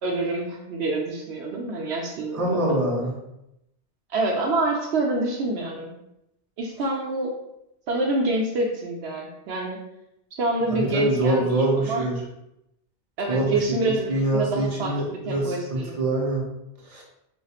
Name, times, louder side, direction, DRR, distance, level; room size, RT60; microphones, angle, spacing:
voice 1, 0.0-2.8 4.1-5.9 6.6-7.3 7.9-9.8 10.4-12.0 13.2-16.0, right 2 dB, 75° right, 0 dB, 0.8 m, -27 dB
voice 2, 2.3-3.1 10.7-12.2 13.3-16.5 16.9-17.0, right 1 dB, 40° right, -3 dB, 0.8 m, -24 dB
2.4 x 2.4 x 4.1 m, 0.84 s
omnidirectional pair, 1.1 m